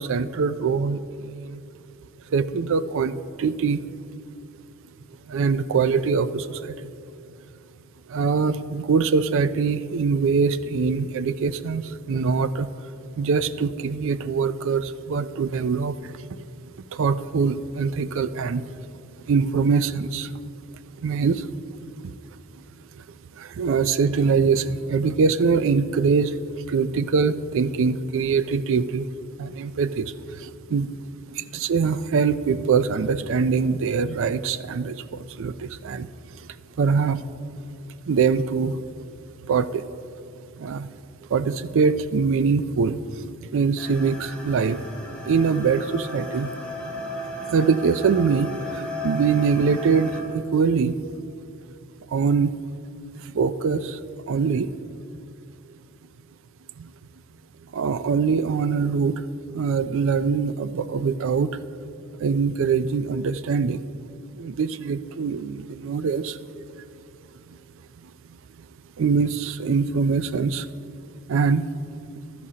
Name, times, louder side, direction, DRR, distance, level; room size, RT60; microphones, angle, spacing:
voice 1, 0.0-1.6 2.3-3.8 5.3-6.9 8.1-12.7 13.2-16.1 16.9-18.7 19.2-20.3 21.0-22.1 23.0-23.1 23.4-26.4 26.7-29.1 29.4-31.0 31.3-36.1 36.4-37.2 38.1-39.0 39.5-39.8 40.6-40.9 41.3-44.8 45.3-46.5 47.4-51.0 52.1-52.5 53.2-54.0 54.3-54.7 56.8-56.9 57.7-59.3 59.5-61.6 62.2-63.8 64.3-66.4 67.5-67.6 68.0-68.1 69.0-70.7 71.3-71.7 72.1-72.2, right 5 dB, 60° right, 14 dB, 0.4 m, -23 dB
sound 1, 43.8-50.2, equal, 5° left, 1.4 m, -35 dB
15.0 x 12.5 x 2.8 m, 2.5 s
head